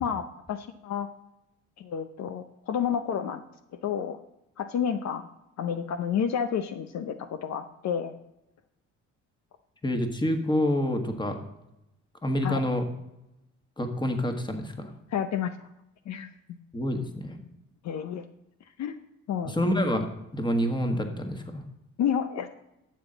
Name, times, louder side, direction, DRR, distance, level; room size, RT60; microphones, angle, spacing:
voice 1, 0.0-1.1 1.8-3.4 3.8-4.2 4.6-5.3 5.6-8.1 12.4-12.6 15.1-15.5 16.1-16.3 17.8-18.2 18.8-19.0 19.3-19.6 22.0-22.5, left 8 dB, 65° left, 9 dB, 0.6 m, -30 dB
voice 2, 9.8-11.4 12.2-12.9 13.8-14.9 16.7-17.4 19.4-20.1 20.3-21.6, left 1 dB, 15° left, 5 dB, 1.5 m, -27 dB
12.0 x 7.3 x 3.9 m, 0.90 s
cardioid pair, 90°, 30 cm